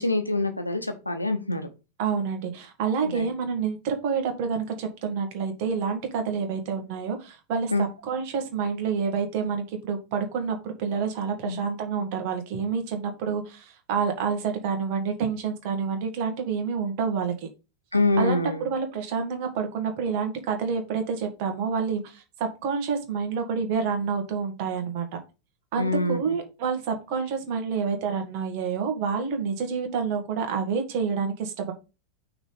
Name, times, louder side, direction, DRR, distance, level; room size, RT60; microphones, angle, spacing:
voice 1, 0.0-1.7 3.0-3.3 7.7-7.9 11.4-11.6 17.9-18.7 25.8-26.2, left 2 dB, 85° left, 1.0 m, -25 dB
voice 2, 2.0-17.5 18.2-25.1 25.7-31.7, right 6 dB, 45° right, 1.9 m, -28 dB
6.0 x 3.9 x 5.3 m
figure-of-eight pair, 90°, 0 cm